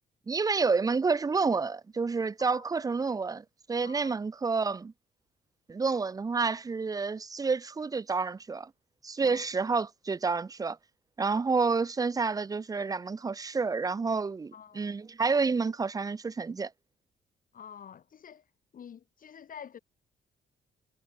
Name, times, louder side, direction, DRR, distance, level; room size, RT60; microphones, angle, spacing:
voice 1, 0.3-4.9 5.7-8.7 9.0-10.8 11.2-16.7, right 4 dB, 20° right, 0.4 m, -29 dB
voice 2, 3.8-4.2 9.2-9.4 11.3-11.4 14.5-14.9 17.5-18.4 18.7-19.8, left 8 dB, 45° left, 0.7 m, -48 dB
cardioid pair, 90°, 20 cm